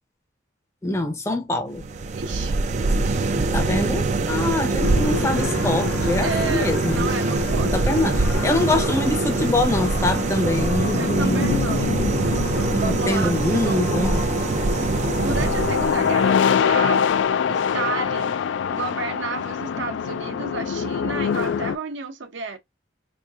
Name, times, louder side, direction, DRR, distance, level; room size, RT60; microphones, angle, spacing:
voice 1, 0.8-1.8 3.5-7.1 7.6-11.6 12.0-12.2 12.7-14.2, left 2 dB, 15° left, 0.6 m, -24 dB
sound 1, 1.7-16.4, right 3 dB, 35° right, 0.3 m, -23 dB
voice 2, 2.1-2.5 6.2-7.7 10.9-11.9 12.8-13.9 15.2-17.1 17.5-18.4 18.7-22.6, right 4 dB, 70° right, 0.7 m, -31 dB
sound 2, 4.8-21.8, left 7 dB, 70° left, 0.3 m, -26 dB
4.3 x 2.6 x 2.3 m
head